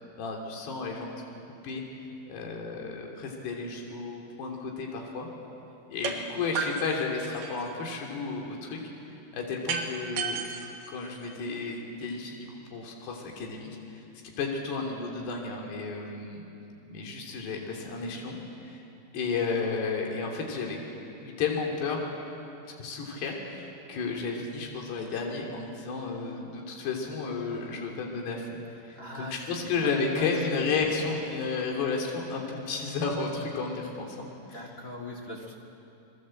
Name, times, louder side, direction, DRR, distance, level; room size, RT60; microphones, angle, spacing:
voice 1, 0.2-1.1 1.6-1.8 2.3-5.3 5.9-8.8 9.3-10.4 10.9-13.7 14.2-16.4 16.9-18.4 18.6-18.7 19.1-20.8 21.2-22.1 22.8-28.5 28.8-34.7, left 4 dB, 70° left, 0 dB, 4.9 m, -32 dB
sound 1, 6.0-6.2 6.6-7.8 9.7-11.7, right 5 dB, 60° right, 3.2 m, -33 dB
voice 2, 28.9-30.9 34.4-35.6, left 1 dB, 35° left, 0 dB, 1.3 m, -41 dB
29.0 x 21.5 x 7.7 m, 2.8 s
omnidirectional pair, 5.0 m